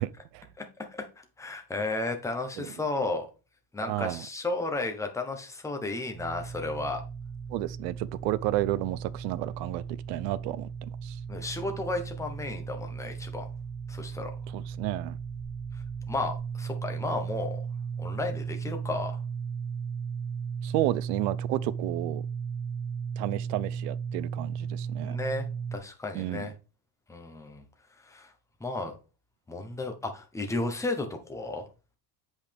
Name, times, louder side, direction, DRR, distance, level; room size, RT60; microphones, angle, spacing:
voice 1, 0.0-0.4 2.6-2.7 3.8-4.3 7.5-11.2 14.5-15.2 20.6-22.2 23.2-25.2 26.1-26.5, right 16 dB, 70° right, 0.7 m, -32 dB
voice 2, 0.6-3.3 3.7-7.0 11.3-13.5 13.9-14.4 16.1-17.6 18.0-19.2 25.0-26.5 27.1-27.6 28.1-28.3 28.6-28.9 29.5-31.6, left 2 dB, 5° left, 0.9 m, -33 dB
sound 1, 6.1-25.8, right 6 dB, 20° right, 1.2 m, -36 dB
8.0 x 5.4 x 3.4 m
cardioid pair, 150°, 49 cm